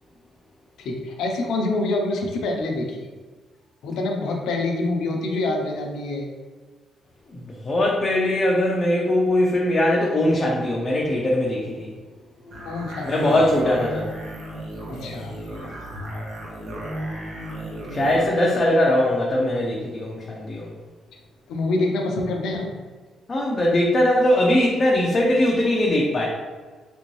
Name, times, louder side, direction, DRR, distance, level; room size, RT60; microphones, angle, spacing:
voice 1, 0.8-3.1 3.8-6.3 12.6-13.4 14.9-15.7 21.5-22.7, left 2 dB, 80° left, 2 dB, 0.6 m, -26 dB
voice 2, 7.3-11.9 12.5-14.1 17.9-20.7 23.3-26.3, left 1 dB, 35° left, -3 dB, 0.6 m, -21 dB
sound 1, 12.5-18.3, right 1 dB, 65° right, 0.9 m, -34 dB
3.4 x 2.6 x 3.1 m, 1.4 s
cardioid pair, 90°, 0 cm